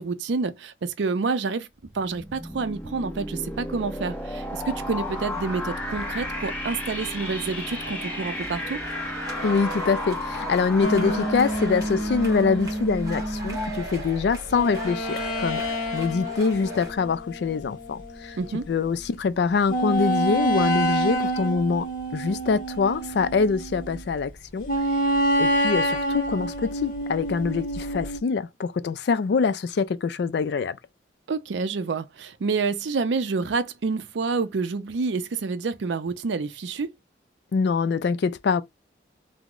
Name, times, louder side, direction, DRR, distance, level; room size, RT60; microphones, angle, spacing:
voice 1, 0.0-1.7 1.9-8.8 18.4-18.7 31.3-36.9, right 4 dB, 75° right, 0.4 m, -28 dB
sound 1, 1.8-13.5, left 1 dB, 10° left, 0.8 m, -34 dB
sound 2, 4.7-16.9, right 1 dB, 20° right, 1.1 m, -39 dB
voice 2, 9.4-15.6 15.9-18.4 18.7-21.9 22.1-24.7 25.4-30.8 37.5-38.6, left 5 dB, 65° left, 0.3 m, -24 dB
sound 3, 10.8-18.5 19.0-19.1 19.7-24.1 24.7-28.2, right 1 dB, 45° left, 0.8 m, -28 dB
3.0 x 2.0 x 3.5 m
head